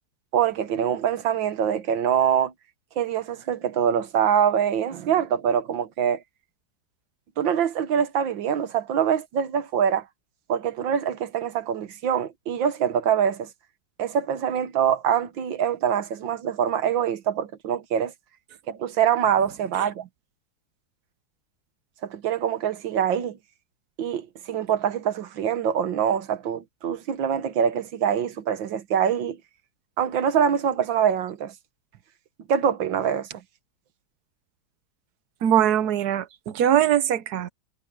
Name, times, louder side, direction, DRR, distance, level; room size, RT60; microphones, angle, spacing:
voice 1, 0.3-2.5 3.0-6.2 7.4-10.1 10.5-13.5 14.0-18.1 18.7-20.1 22.0-23.4 24.0-29.4 30.0-31.5 32.5-33.4, right 8 dB, 85° right, 1.9 m, -24 dB
voice 2, 35.4-37.5, right 10 dB, 65° right, 1.2 m, -21 dB
omnidirectional pair, 2.0 m